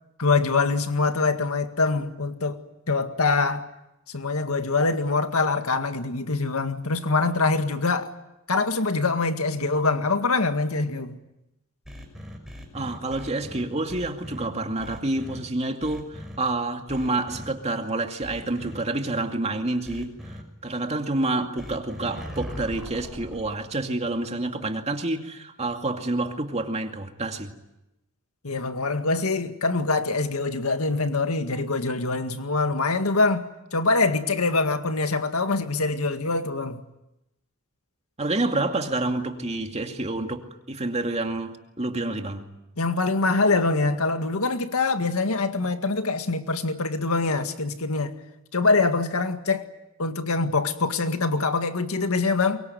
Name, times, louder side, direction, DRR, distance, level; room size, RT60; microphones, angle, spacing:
voice 1, 0.2-2.6 2.9-3.7 4.1-8.1 8.5-11.2 28.4-33.5 33.7-36.8 42.8-48.2 48.5-49.7 50.0-52.6, left 3 dB, 80° left, 1.9 m, -24 dB
sound 1, 11.8-14.5 14.8-15.4 15.8-16.4 16.9-17.5 18.2-18.8 19.8-20.4 21.6-23.5, equal, ahead, 5.9 m, -39 dB
voice 2, 12.7-20.4 20.6-27.5 38.2-42.5, right 2 dB, 30° right, 2.4 m, -28 dB
23.5 x 23.0 x 9.5 m
head